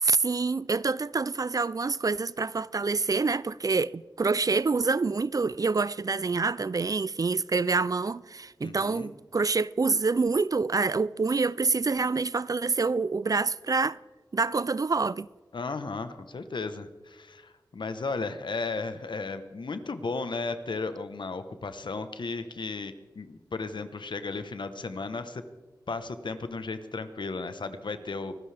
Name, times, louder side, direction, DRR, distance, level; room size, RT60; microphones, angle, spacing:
voice 1, 0.0-14.0 14.3-15.3, right 4 dB, 50° right, 0.4 m, -26 dB
voice 2, 8.6-9.1 15.5-25.4 25.9-28.3, left 3 dB, 75° left, 1.1 m, -35 dB
24.5 x 13.0 x 3.5 m
cardioid pair, 45°, 8 cm